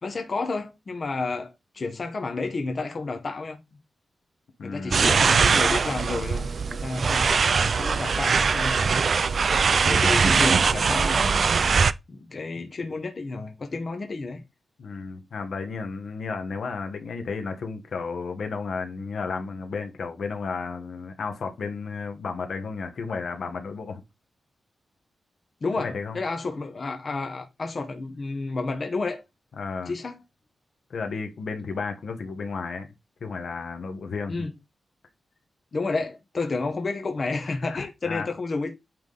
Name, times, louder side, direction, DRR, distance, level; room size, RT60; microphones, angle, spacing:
voice 1, 0.0-3.6 4.6-9.0 9.8-11.4 12.1-14.4 25.6-29.2 29.9-30.1 34.3-34.5 35.7-38.7, left 3 dB, 35° left, 1.0 m, -31 dB
voice 2, 4.6-5.1 14.8-24.0 25.8-26.2 29.6-29.9 30.9-32.9 33.2-34.5 37.6-38.3, left 4 dB, 60° left, 1.2 m, -33 dB
sound 1, 4.9-11.9, right 5 dB, 50° right, 0.3 m, -21 dB
8.8 x 3.5 x 3.9 m
wide cardioid pair, 170°, 0 cm